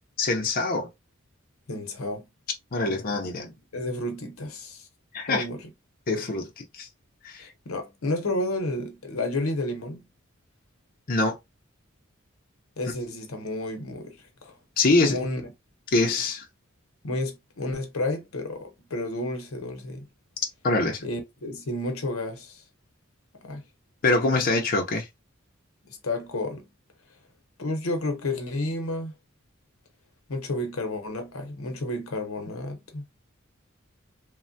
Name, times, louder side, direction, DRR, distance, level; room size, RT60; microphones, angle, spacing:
voice 1, 0.2-0.9 2.7-3.5 5.1-5.4 6.1-6.9 7.2-7.4 11.1-11.4 14.8-15.2 15.9-16.4 20.6-21.0 24.0-25.1, left 3 dB, 45° left, 0.5 m, -24 dB
voice 2, 1.7-2.3 3.7-4.9 5.3-5.7 7.4-10.0 12.8-14.6 15.0-15.5 17.0-20.1 21.0-22.6 23.3-23.6 25.8-26.7 27.6-29.1 30.3-33.0, left 2 dB, 85° left, 0.8 m, -31 dB
3.2 x 2.1 x 2.5 m
head